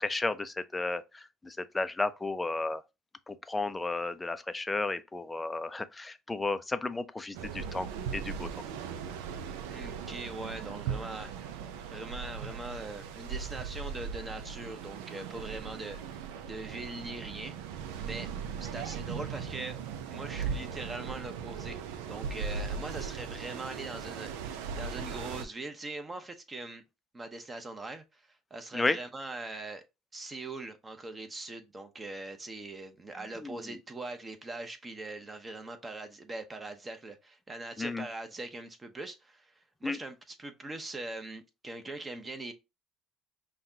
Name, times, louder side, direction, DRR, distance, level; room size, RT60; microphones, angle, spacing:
voice 1, 0.0-2.8 3.3-7.9 8.1-8.5 28.7-29.0 33.3-33.8 37.8-38.1 39.8-40.0, left 3 dB, 15° left, 0.4 m, -33 dB
sound 1, 7.3-25.5, right 6 dB, 90° right, 0.4 m, -38 dB
voice 2, 9.6-11.3 11.9-16.0 16.5-17.7 18.0-18.3 18.6-19.8 20.1-21.8 22.1-26.8 27.1-29.8 30.1-42.5, right 2 dB, 20° right, 0.8 m, -41 dB
5.6 x 2.3 x 2.7 m
supercardioid pair, 100°, 0 cm